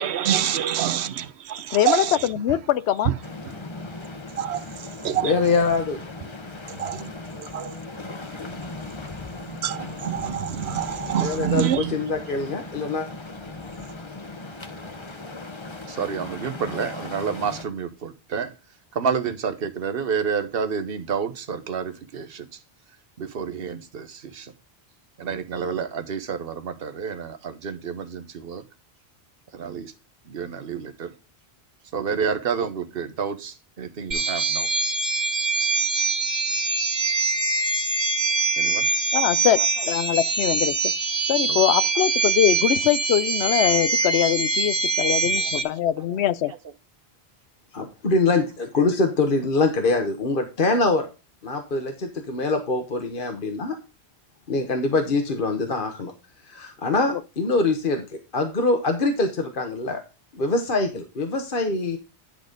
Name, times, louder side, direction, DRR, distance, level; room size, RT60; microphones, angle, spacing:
voice 1, 0.0-2.2 4.4-4.6 5.0-5.4 6.8-7.1 7.4-7.7 9.6-11.9, right 10 dB, 90° right, 0.9 m, -26 dB
voice 2, 1.7-3.1 39.1-40.9 41.3-46.5 57.1-57.2, left 11 dB, 90° left, 0.9 m, -23 dB
sound 1, 3.2-17.7, left 3 dB, 30° left, 1.0 m, -37 dB
voice 3, 5.2-6.0 11.2-13.1 47.7-51.1 51.4-53.8 54.5-56.1 56.5-60.0 60.3-62.0, left 3 dB, 55° left, 1.3 m, -24 dB
voice 4, 15.8-18.5 18.9-22.6 23.2-24.5 25.2-28.6 29.5-29.9 30.2-31.1 31.9-34.7 38.6-38.9 39.6-39.9 41.4-41.7 45.3-46.7, right 6 dB, 65° right, 1.2 m, -30 dB
sound 2, 34.1-45.6, right 3 dB, 45° right, 1.6 m, -24 dB
10.5 x 4.1 x 5.1 m
omnidirectional pair, 1.1 m